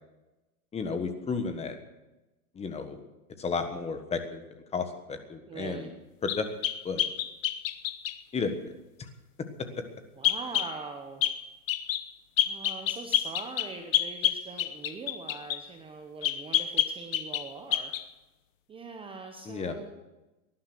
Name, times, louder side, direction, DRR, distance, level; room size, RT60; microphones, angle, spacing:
voice 1, 0.7-1.7 2.5-3.0 3.4-4.4 4.7-5.9 6.2-6.5 6.8-7.0 8.3-8.7 9.0-9.1 19.4-19.8, left 5 dB, 15° left, 7 dB, 1.4 m, -32 dB
voice 2, 5.4-5.9 10.2-11.2 12.4-17.9 18.7-19.9, right 4 dB, 10° right, 5 dB, 0.9 m, -42 dB
sound 1, 6.3-8.2 10.2-10.7 11.2-11.4 11.7-12.0 12.4-15.6 16.2-17.5 17.7-18.0, left 12 dB, 60° left, 1.3 m, -28 dB
18.5 x 11.5 x 6.1 m, 1.0 s
hypercardioid pair, 140°, 45 cm